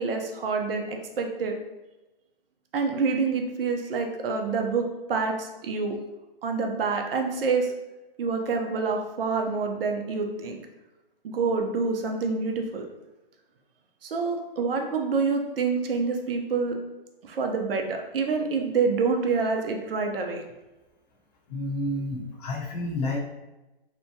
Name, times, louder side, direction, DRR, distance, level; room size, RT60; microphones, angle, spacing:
voice 1, 0.0-1.6 2.7-5.9 6.4-7.7 8.2-10.6 11.2-12.9 14.0-16.8 17.2-20.4, right 4 dB, 70° right, 3 dB, 0.6 m, -27 dB
voice 2, 21.5-23.2, left 1 dB, 40° left, -2 dB, 0.7 m, -30 dB
2.8 x 2.2 x 2.7 m, 1.1 s
hypercardioid pair, 140°, 29 cm